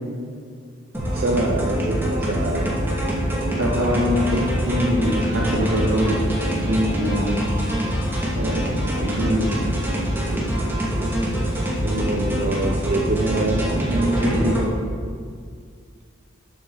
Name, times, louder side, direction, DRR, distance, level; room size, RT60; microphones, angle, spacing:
sound 1, 0.9-14.7, equal, 10° right, 2.2 m, -24 dB
voice 1, 1.1-2.7 4.3-4.4 11.8-13.9, right 2 dB, 50° right, 1 dB, 0.7 m, -25 dB
voice 2, 3.6-7.4 8.4-9.4 13.9-14.6, equal, 85° right, -3 dB, 2.8 m, -23 dB
13.0 x 8.0 x 4.0 m, 2.1 s
head